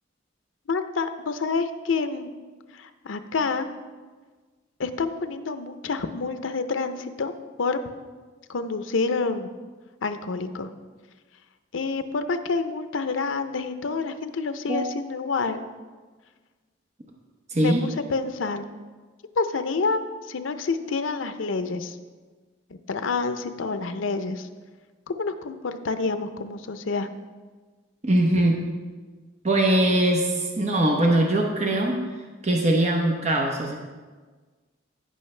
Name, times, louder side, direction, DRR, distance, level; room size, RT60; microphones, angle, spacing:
voice 1, 0.7-2.3 2.7-3.7 4.8-7.3 7.6-7.8 8.5-9.5 10.0-10.7 11.7-15.6 17.6-18.7 19.4-20.0 20.3-22.0 22.9-24.5 25.1-27.1 28.3-28.4, left 4 dB, 80° left, 9 dB, 0.6 m, -28 dB
voice 2, 17.5-17.8 28.0-28.5 29.4-32.0 32.4-33.8, right 1 dB, 35° right, 1 dB, 0.8 m, -21 dB
15.5 x 5.4 x 3.3 m, 1.4 s
head